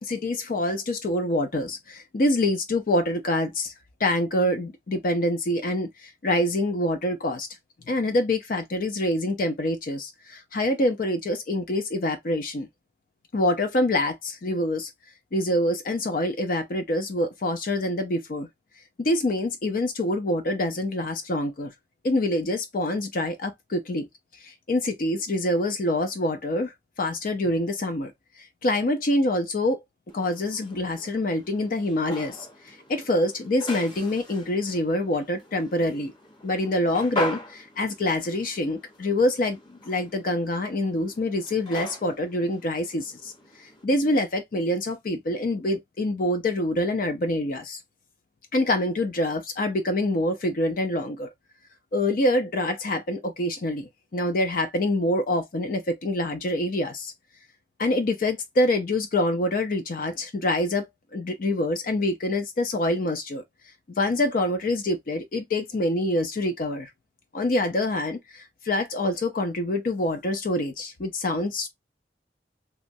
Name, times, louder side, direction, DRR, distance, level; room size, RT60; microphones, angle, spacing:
voice 1, 0.0-3.7 4.0-7.5 7.9-12.7 13.3-14.9 15.3-18.5 19.0-21.7 22.0-24.1 24.4-28.1 28.6-29.8 30.1-36.1 36.4-39.6 39.9-43.3 43.8-47.8 48.5-51.3 51.9-57.1 57.8-63.4 64.0-66.9 67.3-71.7, left 1 dB, 50° left, 0.5 m, -26 dB
sound 1, 30.1-43.8, left 1 dB, 25° left, 0.9 m, -40 dB
3.0 x 2.4 x 2.6 m
head